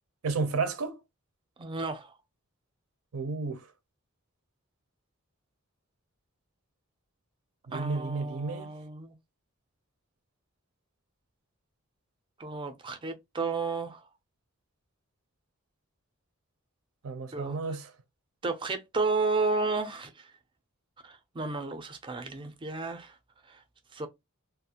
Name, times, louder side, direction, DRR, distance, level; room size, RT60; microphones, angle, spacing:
voice 1, 0.2-1.0 3.1-3.6 7.7-8.7 17.0-17.9, right 4 dB, 85° right, 0.5 m, -32 dB
voice 2, 1.6-2.2 7.7-9.2 12.4-14.1 17.3-17.8 18.4-20.3 21.0-23.2 23.5-23.6 23.9-24.1, right 3 dB, 25° right, 0.4 m, -32 dB
2.4 x 2.1 x 2.8 m
head